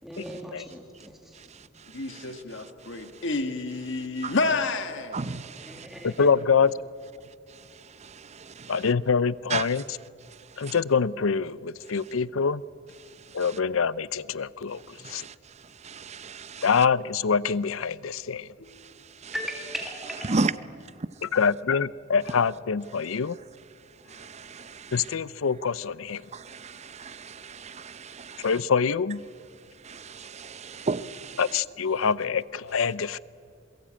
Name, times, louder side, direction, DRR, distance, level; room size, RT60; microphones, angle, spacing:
voice 1, 0.0-1.4 5.3-6.3 19.3-20.5, equal, ahead, 2.0 m, -38 dB
voice 2, 1.9-5.2 18.6-18.7 24.1-24.2, left 3 dB, 65° left, 1.6 m, -30 dB
voice 3, 5.1-5.6 8.0-8.8 9.5-9.7 10.7-10.8 15.0-15.3 15.8-16.6 19.2-19.3 20.3-20.5 24.1-24.9 26.3-28.5 29.8-31.4, right 3 dB, 35° right, 0.7 m, -33 dB
voice 4, 6.0-6.7 8.7-10.0 10.6-12.6 13.3-15.2 16.6-18.5 21.2-23.4 24.9-26.2 28.4-29.2 31.4-33.2, left 5 dB, 85° left, 0.6 m, -25 dB
28.5 x 22.5 x 8.8 m
head